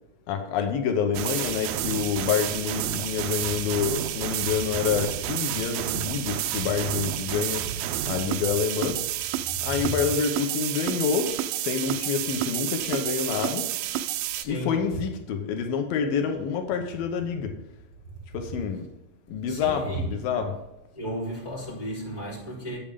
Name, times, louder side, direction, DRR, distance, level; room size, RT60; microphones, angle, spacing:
voice 1, 0.3-7.7 8.1-9.1 9.6-13.7 14.4-17.6 18.3-18.9 19.3-20.6, left 7 dB, 85° left, 2.7 m, -27 dB
sound 1, 1.1-14.4, right 12 dB, 80° right, 2.0 m, -30 dB
voice 2, 14.3-14.7 19.5-20.3 20.9-22.8, right 1 dB, 10° left, 3.4 m, -34 dB
9.1 x 8.6 x 3.5 m
omnidirectional pair, 4.0 m